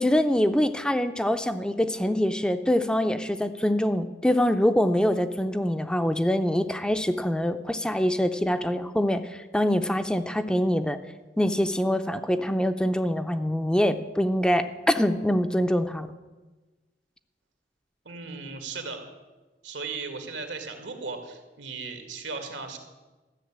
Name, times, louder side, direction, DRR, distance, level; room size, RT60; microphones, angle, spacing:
voice 1, 0.0-11.0 11.4-16.1, equal, 5° left, 9 dB, 0.5 m, -24 dB
voice 2, 18.1-19.0 19.6-22.8, right 4 dB, 85° right, 5 dB, 2.0 m, -36 dB
13.5 x 6.9 x 8.7 m, 1.2 s
head